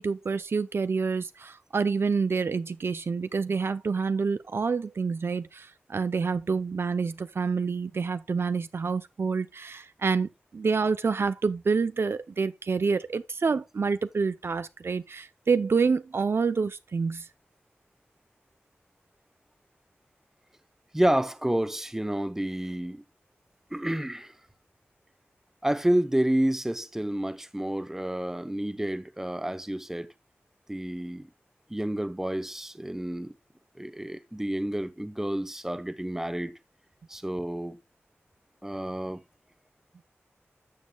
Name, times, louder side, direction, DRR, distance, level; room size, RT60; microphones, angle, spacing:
voice 1, 0.0-17.3, right 5 dB, 65° right, 0.6 m, -27 dB
voice 2, 20.9-23.0 23.7-24.3 25.6-30.1 30.7-31.3 31.7-33.3 33.8-36.5 37.1-37.8 38.6-39.2, right 1 dB, 10° right, 0.9 m, -29 dB
13.0 x 7.4 x 2.3 m
wide cardioid pair, 80°, 4 cm